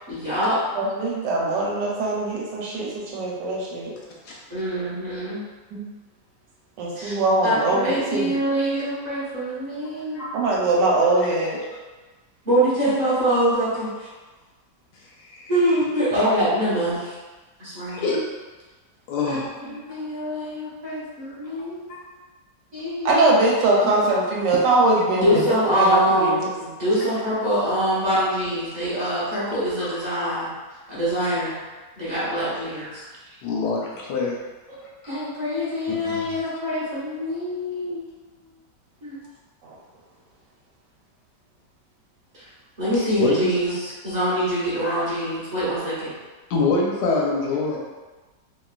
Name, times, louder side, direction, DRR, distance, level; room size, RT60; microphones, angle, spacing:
voice 1, 0.1-0.6 4.5-5.4 7.0-7.1 7.4-10.4 12.4-14.1 15.5-17.2 17.6-18.1 19.2-21.8 22.7-23.3 23.8-23.9 25.1-30.5 30.9-31.6 32.0-33.0 34.7-34.8 35.1-38.0 39.0-39.2 42.3-42.5 42.8-46.1, equal, 35° right, -11 dB, 0.7 m, -24 dB
voice 2, 0.7-3.9 5.7-5.8 6.8-8.4 10.3-11.6 15.9-16.0 23.0-25.5 25.8-26.4 32.8-32.9 39.6-39.7, right 2 dB, 90° right, -3 dB, 1.3 m, -22 dB
voice 3, 15.2-15.5 17.9-18.2 19.1-19.5 25.3-25.4 29.0-29.1 29.8-29.9 33.4-34.4 35.0-35.2 36.0-36.5 43.2-43.5 46.5-47.8, left 3 dB, 75° left, -3 dB, 1.1 m, -25 dB
2.9 x 2.4 x 2.3 m, 1.3 s
omnidirectional pair, 1.9 m